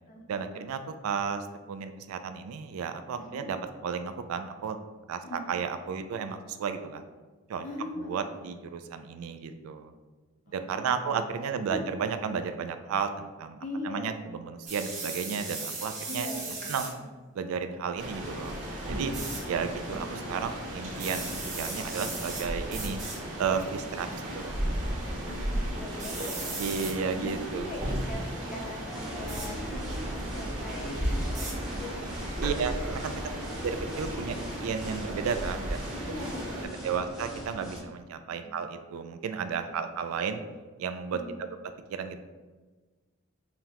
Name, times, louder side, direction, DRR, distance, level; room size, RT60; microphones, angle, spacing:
voice 1, 0.3-3.6 3.8-4.8 5.1-5.2 5.5-7.0 7.5-7.6 8.0-9.9 10.5-13.6 13.8-16.3 16.7-17.0 17.4-18.6 18.9-19.1 19.5-23.0 23.4-24.1 24.3-24.6 26.6-27.7 32.4-33.2 33.6-36.0 36.8-40.4 40.8-41.2 41.9-42.2, right 6 dB, 85° right, 9 dB, 0.3 m, -33 dB
voice 2, 3.2-3.5 5.2-5.5 7.6-8.5 10.5-11.8 13.6-14.3 16.1-17.1 19.1-19.4 19.7-19.9 25.1-26.6 27.2-27.8 28.1-32.4 33.3-33.5 34.2-34.3 35.9-37.0 38.2-38.5 39.5-39.8 41.1-41.4, left 1 dB, 40° left, 1 dB, 0.6 m, -42 dB
sound 1, 14.7-16.9 19.1-19.4 20.9-22.4 22.7-23.2 24.0-24.3 26.0-26.9 29.3-29.5 31.4-31.5, right 3 dB, 35° right, 0.9 m, -37 dB
sound 2, 18.0-36.7, equal, 60° right, 1.4 m, -35 dB
sound 3, 28.8-37.8, equal, ahead, 0.6 m, -40 dB
5.6 x 2.1 x 2.9 m, 1.3 s
head